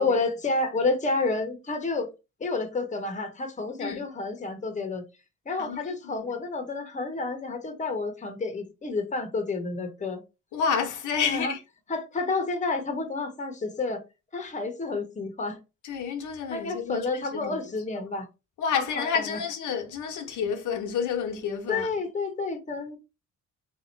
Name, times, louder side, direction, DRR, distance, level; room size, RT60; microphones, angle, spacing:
voice 1, 0.0-2.1 2.4-5.0 5.5-10.2 11.2-11.5 11.9-14.0 14.3-15.6 16.5-18.3 18.7-19.4 21.7-23.0, left 3 dB, 25° left, 1.0 m, -30 dB
voice 2, 5.6-6.3 10.5-11.6 15.8-17.6 18.6-21.9, left 6 dB, 80° left, 0.9 m, -30 dB
3.5 x 2.8 x 4.4 m
cardioid pair, 100°, 30 cm